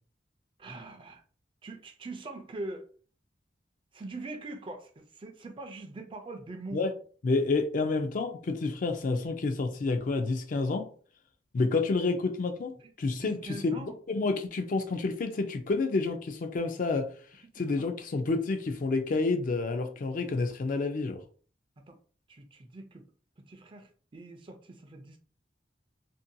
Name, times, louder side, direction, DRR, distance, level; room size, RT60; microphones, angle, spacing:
voice 1, 0.6-1.2 1.6-2.9 3.9-6.8 13.1-13.9 17.7-17.9 21.9-22.0 22.3-23.1 23.5-25.2, right 2 dB, 30° right, 0.4 m, -42 dB
voice 2, 7.2-10.9 11.5-12.7 13.0-13.7 14.1-17.1 17.6-21.2, left 3 dB, 50° left, 0.4 m, -29 dB
2.6 x 2.1 x 2.6 m
head